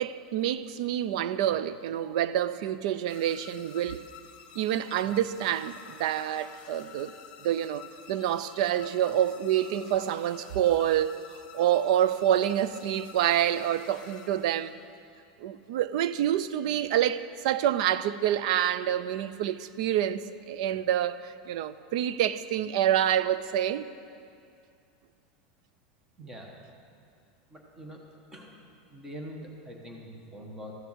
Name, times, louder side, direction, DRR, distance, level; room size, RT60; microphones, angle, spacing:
voice 1, 0.0-4.0 4.6-7.2 7.4-14.8 15.4-23.9, right 11 dB, 60° right, 0.4 m, -27 dB
sound 1, 3.1-14.9, left 8 dB, 30° left, 1.2 m, -50 dB
voice 2, 8.2-8.6 26.2-26.5 27.5-28.0 28.3-28.6 28.9-30.7, equal, 10° right, 1.2 m, -44 dB
14.0 x 6.9 x 7.4 m
supercardioid pair, 170°, 4 cm